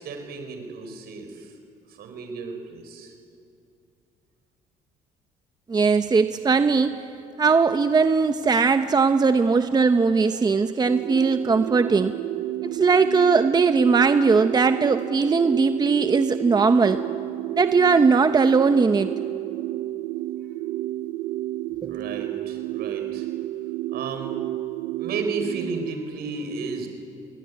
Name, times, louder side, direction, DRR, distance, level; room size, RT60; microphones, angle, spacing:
voice 1, 0.0-1.5 1.9-3.1 20.2-20.3 21.9-23.3 23.9-24.3 25.0-26.9, right 4 dB, 70° right, 5 dB, 4.9 m, -33 dB
voice 2, 5.7-6.9 7.4-12.1 12.6-17.0 17.5-19.1 21.8-22.0, right 4 dB, 25° right, 9 dB, 0.9 m, -19 dB
sound 1, 10.8-25.9, right 15 dB, 85° right, 0.6 m, -31 dB
26.0 x 20.5 x 9.7 m, 2.5 s
cardioid pair, 110°, 17 cm